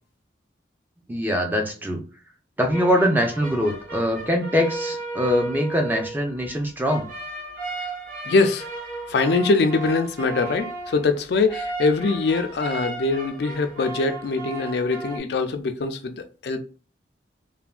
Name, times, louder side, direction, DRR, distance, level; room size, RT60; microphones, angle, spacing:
voice 1, 1.1-2.0 2.6-7.1, equal, 10° right, 0.5 m, -23 dB
sound 1, 2.7-15.2, right 3 dB, 50° right, 1.2 m, -35 dB
voice 2, 8.3-8.7 9.1-16.6, left 3 dB, 65° left, 0.4 m, -23 dB
3.3 x 2.2 x 2.3 m
head